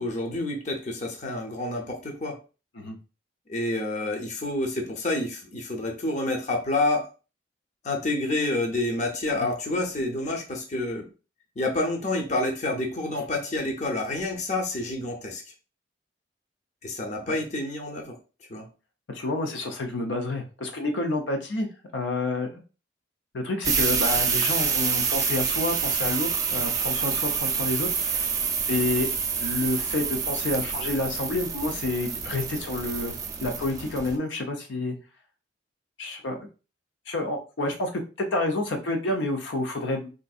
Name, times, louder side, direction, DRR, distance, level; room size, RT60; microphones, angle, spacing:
voice 1, 0.0-2.4 3.5-7.1 7.8-11.1 11.6-15.4 16.8-18.2 18.5-18.7, left 2 dB, 40° left, 1 dB, 0.7 m, -28 dB
voice 2, 19.1-21.7 21.9-22.6 23.3-28.3 28.7-29.1 29.4-33.1 33.4-35.0 36.0-36.5 37.1-40.1, left 2 dB, 80° left, 3 dB, 0.6 m, -29 dB
sound 1, 23.6-34.2, right 6 dB, 20° right, 0.4 m, -27 dB
3.8 x 2.5 x 2.3 m, 0.34 s
head